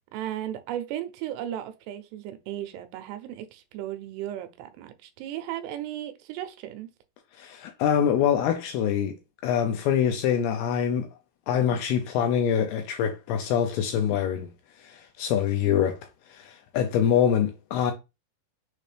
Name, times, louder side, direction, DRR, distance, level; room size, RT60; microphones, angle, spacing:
voice 1, 0.1-6.9, right 12 dB, 80° right, 2.6 m, -35 dB
voice 2, 7.4-9.1 9.4-11.1 11.5-14.5 14.8-16.0 16.3-17.9, left 8 dB, 80° left, 2.3 m, -24 dB
6.4 x 2.5 x 3.2 m
omnidirectional pair, 5.0 m